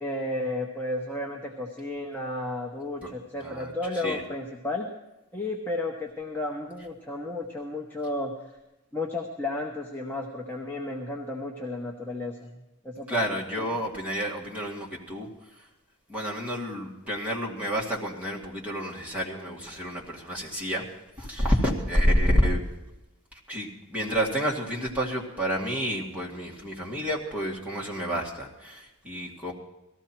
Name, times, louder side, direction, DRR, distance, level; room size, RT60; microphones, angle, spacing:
voice 1, 0.0-4.9 5.3-8.3 8.9-12.5 12.8-13.2 13.6-13.7, left 2 dB, 10° left, -1 dB, 1.0 m, -33 dB
voice 2, 3.4-3.7 4.0-4.2 13.1-15.3 16.1-20.8 21.2-22.6 23.5-29.5, equal, 5° right, -4 dB, 2.2 m, -29 dB
18.0 x 14.0 x 4.5 m, 0.99 s
head